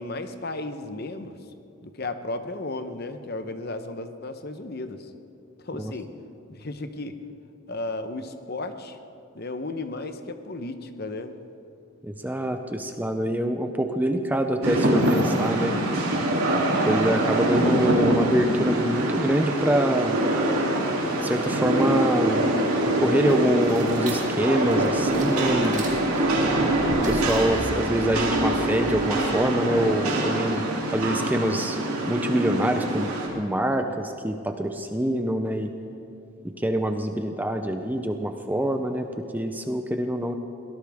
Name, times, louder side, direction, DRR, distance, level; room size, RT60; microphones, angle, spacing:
voice 1, 0.0-1.4 1.8-5.1 5.6-6.1 6.6-7.2 7.7-9.0 9.3-11.4, left 2 dB, 45° left, 9 dB, 0.9 m, -34 dB
voice 2, 12.0-15.8 16.9-20.2 21.2-22.5 23.0-25.8 27.1-30.6 30.9-31.8 32.1-35.7 36.6-39.1 39.3-40.4, right 1 dB, 10° right, 6 dB, 0.5 m, -25 dB
Rain, 14.6-33.3, right 1 dB, 85° right, 3.0 m, -24 dB
sound 1, 22.9-29.5, right 1 dB, 35° right, 2.9 m, -39 dB
22.5 x 18.0 x 3.6 m, 2.6 s
head